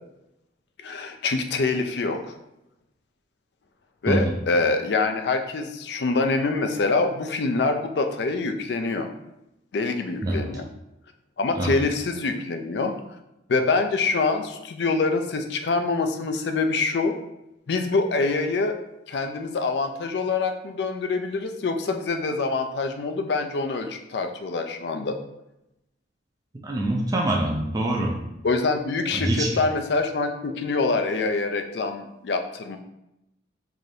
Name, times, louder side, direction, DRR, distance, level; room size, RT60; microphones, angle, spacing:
voice 1, 0.8-2.2 4.0-9.1 9.7-10.7 11.4-12.9 13.5-17.1 17.7-18.8 19.1-25.1 28.4-32.8, left 3 dB, 60° left, 6 dB, 0.4 m, -25 dB
voice 2, 26.6-28.2 29.1-29.5, right 1 dB, 20° right, -1 dB, 0.4 m, -24 dB
4.8 x 2.6 x 2.7 m, 0.88 s
head